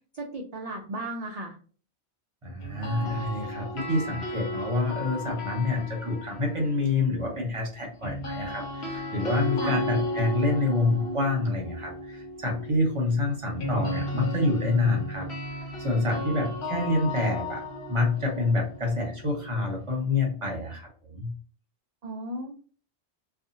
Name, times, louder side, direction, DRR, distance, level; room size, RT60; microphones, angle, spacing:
voice 1, 0.1-1.6 9.6-9.8 22.0-22.5, right 1 dB, 65° right, 1 dB, 0.4 m, -35 dB
voice 2, 2.4-15.3 15.8-21.3, left 2 dB, 30° right, -1 dB, 0.8 m, -27 dB
sound 1, 2.6-6.8 8.0-19.9, left 1 dB, 65° left, 1.1 m, -35 dB
2.7 x 2.4 x 2.6 m, 0.41 s
omnidirectional pair, 1.2 m